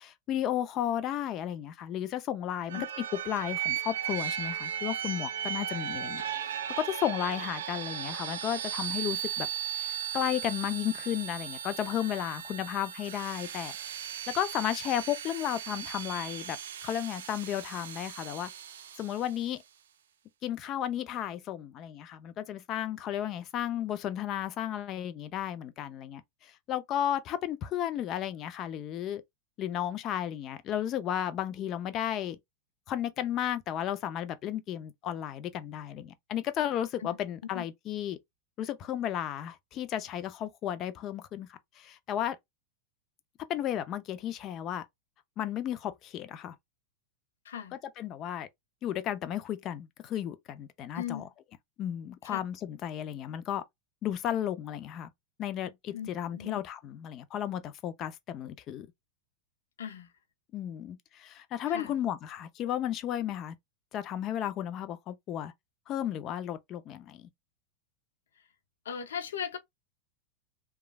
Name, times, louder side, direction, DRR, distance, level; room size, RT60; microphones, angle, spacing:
voice 1, 0.0-9.5 9.7-13.7 14.3-18.5 19.0-19.6 20.4-29.2 29.6-32.4 32.9-38.2 38.6-42.4 43.5-44.8 45.4-46.5 47.7-48.5 48.8-51.2 51.8-53.6 54.0-55.1 55.4-58.9 60.5-63.5 63.9-65.5 65.9-67.3, left 11 dB, 40° left, 0.5 m, -33 dB
sound 1, 2.7-19.4, right 9 dB, 80° right, 0.4 m, -37 dB
voice 2, 5.7-6.0 37.0-37.1 37.5-37.6 47.4-47.8 50.9-51.2 52.2-52.4 55.9-56.6 59.8-60.1 61.7-61.9 68.8-69.6, left 8 dB, 85° left, 0.6 m, -38 dB
3.1 x 2.3 x 2.2 m
hypercardioid pair, 110°, 0 cm